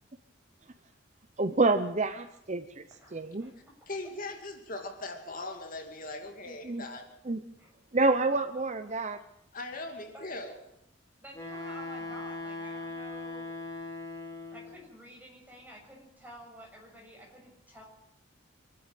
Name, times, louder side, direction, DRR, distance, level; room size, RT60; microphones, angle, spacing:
voice 1, 1.4-2.8 3.1-3.5 6.6-6.8 7.3-7.4 7.9-9.2, right 3 dB, 35° right, 10 dB, 0.8 m, -28 dB
voice 2, 3.0-3.5 7.6-7.7 10.1-10.3 11.2-13.6 14.5-17.8, equal, 10° right, -1 dB, 6.9 m, -50 dB
voice 3, 3.9-7.1 9.5-10.6, left 2 dB, 45° left, 4 dB, 2.5 m, -40 dB
Wind instrument woodwind instrument, 11.3-14.8, left 2 dB, 15° left, 4.8 m, -39 dB
25.0 x 11.5 x 8.9 m, 0.79 s
head